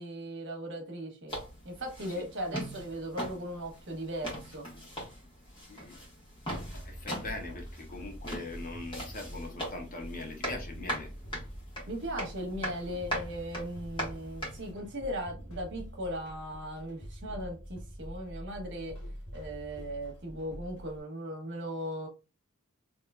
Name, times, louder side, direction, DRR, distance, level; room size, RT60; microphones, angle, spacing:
voice 1, 0.0-1.3 1.6-4.7 11.9-18.9 19.3-22.1, equal, 55° right, 1.2 m, -38 dB
sound 1, 1.3-14.7, equal, 25° left, 1.5 m, -41 dB
sound 2, 6.5-21.0, equal, 70° left, 1.5 m, -45 dB
voice 2, 6.8-11.1, left 2 dB, 40° left, 1.0 m, -41 dB
3.7 x 2.9 x 2.3 m
head